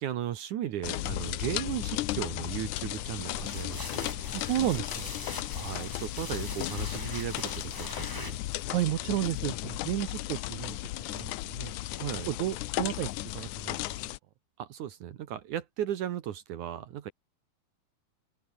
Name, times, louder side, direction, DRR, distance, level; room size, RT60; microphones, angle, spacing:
voice 1, 0.0-4.2 5.5-8.4 12.0-12.3 14.6-17.1, right 11 dB, 65° right, 2.3 m, -36 dB
sound 1, 0.8-14.2, left 17 dB, 90° left, 1.7 m, -35 dB
sound 2, 2.8-8.7, left 1 dB, 5° left, 3.0 m, -44 dB
voice 2, 4.3-5.1 8.7-11.7 12.3-14.0, right 14 dB, 80° right, 1.7 m, -32 dB
omnidirectional pair, 4.5 m